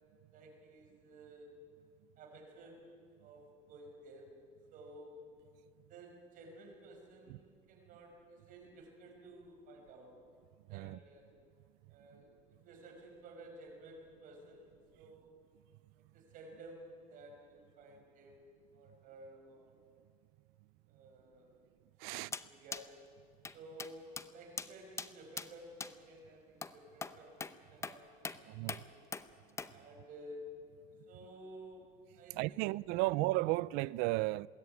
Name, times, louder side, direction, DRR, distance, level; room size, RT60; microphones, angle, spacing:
voice 1, 0.3-1.6 2.2-3.0 3.2-4.3 4.7-5.2 5.9-10.2 10.7-11.3 11.9-12.3 12.6-15.3 16.1-19.7 20.9-21.6 22.0-23.0 23.5-29.1 29.7-30.5 31.1-33.0, right 1 dB, 60° right, 5.9 m, -54 dB
voice 2, 22.0-22.3 28.5-28.8 32.4-34.5, right 20 dB, 85° right, 0.4 m, -34 dB
sound 1, 22.3-22.5 22.7-22.8 23.4-23.5 23.8-23.9 24.2-24.3 24.6-24.7 25.0-25.1 25.4-25.5 25.8-25.9 26.6-26.7 27.0-27.1 27.4-27.5 27.8-28.0 28.2-28.4 28.7-28.8 29.1-29.3 29.6-29.7, left 4 dB, 15° left, 0.8 m, -41 dB
21.5 x 16.5 x 9.3 m
cardioid pair, 120°, 16 cm